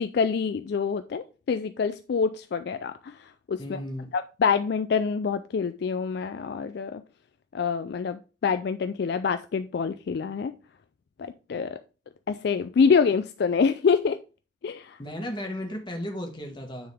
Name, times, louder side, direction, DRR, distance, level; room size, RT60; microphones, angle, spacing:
voice 1, 0.0-3.2 3.5-3.8 4.1-7.0 7.5-10.5 11.2-11.8 12.3-14.2 14.6-15.0, left 5 dB, 55° left, 0.3 m, -26 dB
voice 2, 3.6-4.1 15.0-16.9, left 1 dB, 25° left, 1.4 m, -35 dB
9.3 x 3.9 x 3.4 m
head